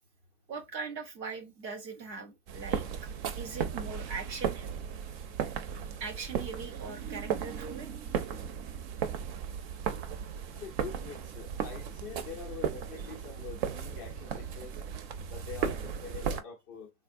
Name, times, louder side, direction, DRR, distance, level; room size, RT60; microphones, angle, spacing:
voice 1, 0.5-2.8 3.4-4.7 6.0-7.9, right 4 dB, 85° right, 1.0 m, -40 dB
sound 1, 2.5-16.4, right 7 dB, 40° right, 0.5 m, -36 dB
voice 2, 10.6-14.7 15.3-16.9, left 7 dB, 20° left, 0.3 m, -45 dB
3.4 x 2.1 x 2.5 m
figure-of-eight pair, 100°, 49 cm